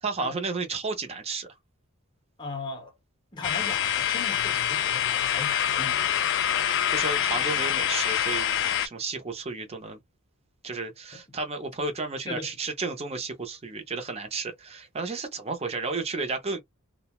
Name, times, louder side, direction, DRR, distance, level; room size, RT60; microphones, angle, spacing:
voice 1, 0.0-1.5 6.9-10.0 10.6-16.6, right 4 dB, 30° right, 0.6 m, -32 dB
voice 2, 2.4-3.0 3.3-6.0 11.1-11.2 12.3-12.5, left 3 dB, 20° left, 0.7 m, -38 dB
sound 1, 3.4-8.9, left 10 dB, 60° left, 0.3 m, -26 dB
2.6 x 2.1 x 2.9 m
head